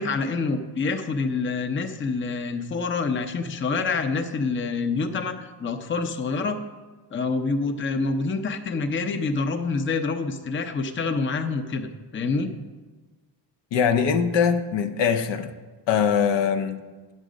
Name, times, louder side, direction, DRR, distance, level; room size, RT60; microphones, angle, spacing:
voice 1, 0.0-6.6 7.1-12.5, left 4 dB, 25° left, 7 dB, 0.7 m, -27 dB
voice 2, 13.7-15.5 15.9-16.8, left 7 dB, 65° left, 8 dB, 0.8 m, -22 dB
9.0 x 6.5 x 5.1 m, 1.3 s
cardioid pair, 105°, 46 cm